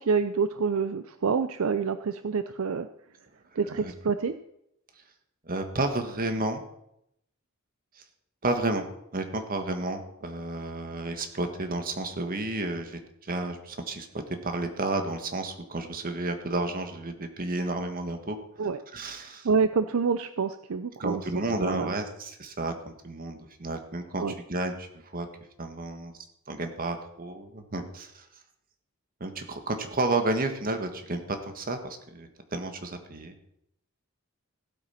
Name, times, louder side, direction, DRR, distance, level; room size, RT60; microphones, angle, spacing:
voice 1, 0.0-2.9 3.6-4.3 18.6-18.8 19.2-21.2 21.6-21.9 24.2-24.3, right 5 dB, 70° right, 11 dB, 0.5 m, -27 dB
voice 2, 5.4-6.6 8.0-8.1 8.4-8.8 9.1-14.1 14.4-18.4 18.9-19.5 21.0-24.2 24.5-25.3 25.6-26.1 26.5-28.2 29.2-33.3, right 2 dB, 40° right, 6 dB, 1.6 m, -31 dB
16.0 x 8.2 x 5.8 m, 0.79 s
head